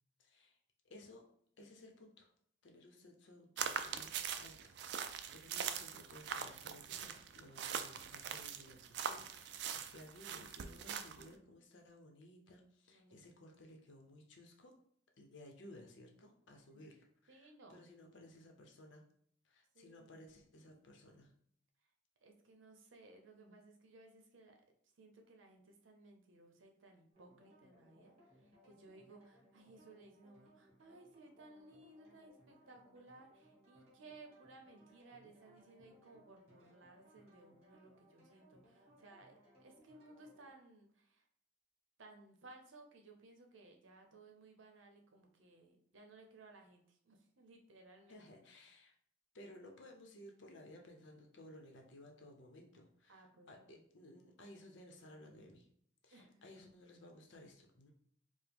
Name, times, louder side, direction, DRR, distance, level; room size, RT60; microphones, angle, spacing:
voice 1, 0.2-0.6 0.8-1.2 1.6-2.3 2.6-14.7 15.2-19.0 19.4-21.3 48.1-48.9 49.3-55.7 56.0-57.9, left 1 dB, 70° left, 2 dB, 0.7 m, -58 dB
sound 1, 3.6-11.3, right 7 dB, 60° right, 0.3 m, -42 dB
voice 2, 12.9-13.6 16.7-16.9 17.3-17.8 19.7-20.3 22.2-24.6 25.0-41.3 42.0-48.2 53.1-53.8 56.1-56.4, right 2 dB, 80° right, 3 dB, 0.7 m, -60 dB
sound 2, 27.1-40.5, equal, 30° right, 1.3 m, -66 dB
4.9 x 2.1 x 3.4 m, 0.64 s
head